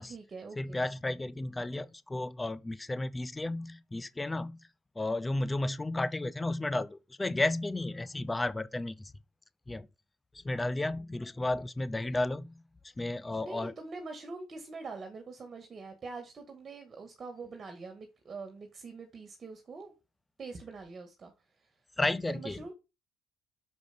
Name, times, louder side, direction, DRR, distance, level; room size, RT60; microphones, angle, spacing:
voice 1, 0.0-0.8 13.4-19.9 20.4-21.3 22.3-22.7, right 4 dB, 35° right, 1.9 m, -44 dB
voice 2, 0.6-4.6 5.0-9.1 9.7-9.9 10.3-12.6 13.0-13.7 22.0-22.6, left 2 dB, 15° left, 0.6 m, -33 dB
6.4 x 5.2 x 6.8 m
supercardioid pair, 90°, 0 cm